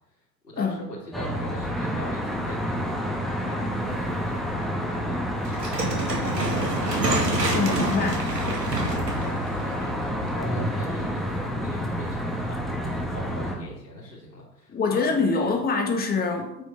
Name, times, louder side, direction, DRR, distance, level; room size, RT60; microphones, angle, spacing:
voice 1, 0.4-5.2 5.6-15.4, left 1 dB, 80° left, -9 dB, 3.3 m, -41 dB
Traffic noise roadway noise, 1.1-13.6, equal, ahead, 1.6 m, -29 dB
sound 1, 5.4-10.6, right 2 dB, 85° right, 2.0 m, -28 dB
voice 2, 7.5-8.2 14.7-16.6, left 4 dB, 20° left, 3 dB, 1.7 m, -25 dB
8.9 x 5.5 x 5.5 m, 0.83 s
figure-of-eight pair, 85°, 48 cm